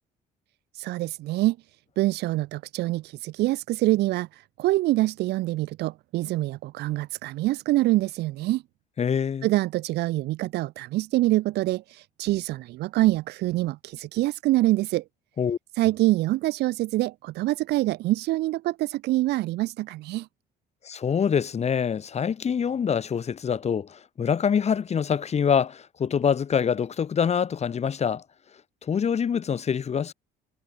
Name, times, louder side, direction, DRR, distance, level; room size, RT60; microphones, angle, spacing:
voice 1, 0.7-1.6 2.0-8.6 9.4-15.0 15.8-20.3, right 17 dB, 80° right, 2.5 m, -25 dB
voice 2, 9.0-9.5 15.4-15.6 20.8-28.2 28.8-30.1, left 7 dB, 40° left, 5.3 m, -25 dB
cardioid pair, 110°, 17 cm